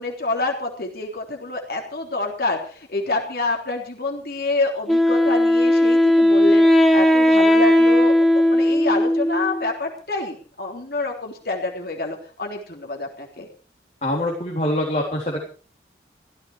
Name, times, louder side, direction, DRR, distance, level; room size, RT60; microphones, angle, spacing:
voice 1, 0.0-13.5, left 2 dB, 55° left, 1 dB, 3.5 m, -27 dB
Wind instrument woodwind instrument, 4.9-9.7, left 1 dB, ahead, 1.7 m, -16 dB
voice 2, 14.0-15.4, left 1 dB, 40° left, -2 dB, 3.8 m, -24 dB
16.0 x 14.5 x 4.9 m, 0.39 s
head